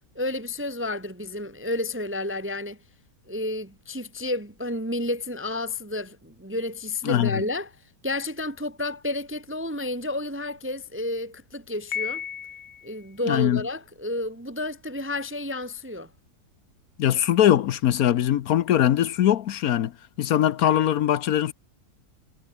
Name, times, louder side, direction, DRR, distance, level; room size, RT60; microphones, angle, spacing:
voice 1, 0.1-2.8 3.3-7.7 8.0-12.2 12.8-16.1, left 2 dB, 10° right, 0.6 m, -31 dB
voice 2, 7.0-7.4 13.3-13.6 17.0-19.9 20.2-21.5, left 11 dB, 65° left, 1.2 m, -21 dB
Piano, 11.9-13.0, left 8 dB, 85° left, 0.4 m, -33 dB
omnidirectional pair, 1.7 m